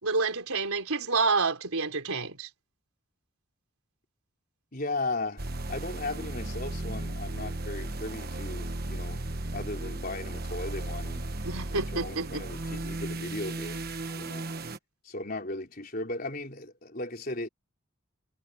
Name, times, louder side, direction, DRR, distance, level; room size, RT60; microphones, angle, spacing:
voice 1, 0.0-2.5 11.4-12.4, right 4 dB, 85° right, 4.0 m, -28 dB
voice 2, 4.7-9.3 9.5-11.3 11.7-13.9 14.1-14.5 15.0-17.5, left 2 dB, 40° left, 4.4 m, -36 dB
sound 1, 5.4-14.8, right 2 dB, 45° right, 1.3 m, -35 dB
head